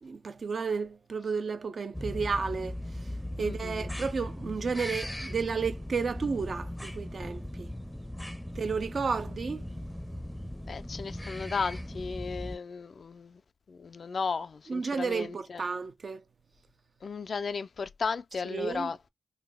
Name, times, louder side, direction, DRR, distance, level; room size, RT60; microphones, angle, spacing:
voice 1, 0.0-3.1 3.4-7.7 8.6-9.6 14.7-16.2 18.5-18.9, right 5 dB, 60° right, 0.5 m, -32 dB
sound 1, 1.9-12.6, left 1 dB, 5° left, 0.5 m, -38 dB
voice 2, 3.4-3.9 10.7-13.4 13.7-15.7 17.0-19.0, left 5 dB, 60° left, 0.3 m, -35 dB
3.3 x 2.2 x 3.5 m
cardioid pair, 65°, 0 cm